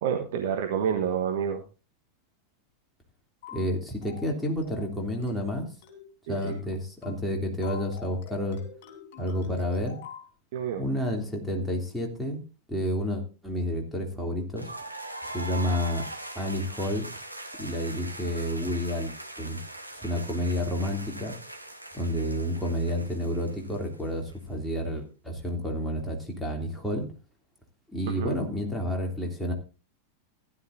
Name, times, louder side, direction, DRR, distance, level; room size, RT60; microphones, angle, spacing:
voice 1, 0.0-1.6 6.3-6.5 10.5-10.8 28.1-28.4, right 8 dB, 55° right, 5 dB, 1.3 m, -28 dB
sound 1, 3.4-3.7 4.0-4.3 4.6-4.9 5.2-5.5 5.8-6.1 6.4-6.7 7.0-7.3 7.6-10.3, left 6 dB, 50° left, 3.3 m, -46 dB
voice 2, 3.5-5.7 6.3-8.6 9.2-10.0 10.8-12.4 12.7-14.7 15.3-16.0 16.3-17.1 17.6-19.1 19.4-19.6 20.0-21.3 21.9-27.0 27.9-29.5, equal, 5° left, -1 dB, 3.1 m, -30 dB
sound 2, 14.6-24.3, right 2 dB, 85° right, 1.3 m, -41 dB
15.5 x 11.0 x 2.7 m, 0.34 s
figure-of-eight pair, 90°, 0 cm